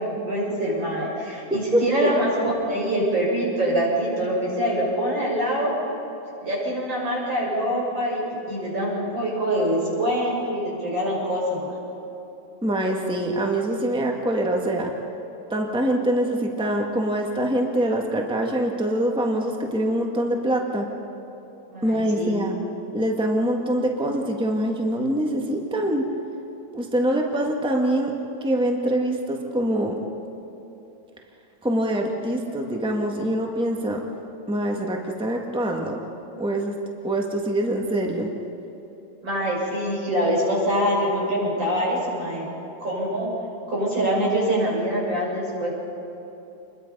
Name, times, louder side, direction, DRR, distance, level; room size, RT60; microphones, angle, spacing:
voice 1, 0.0-5.7 6.4-11.8 21.7-22.4 39.2-42.5 42.8-43.3 43.7-45.7, equal, 80° right, -5 dB, 7.3 m, -24 dB
voice 2, 1.5-2.1 12.6-14.9 15.5-20.9 21.8-22.6 22.9-26.0 26.7-28.1 28.4-29.9 31.6-34.0 34.5-36.0 36.4-36.7 37.0-38.3, right 1 dB, 5° right, 1 dB, 1.6 m, -24 dB
28.0 x 22.0 x 5.5 m, 2.9 s
omnidirectional pair, 2.0 m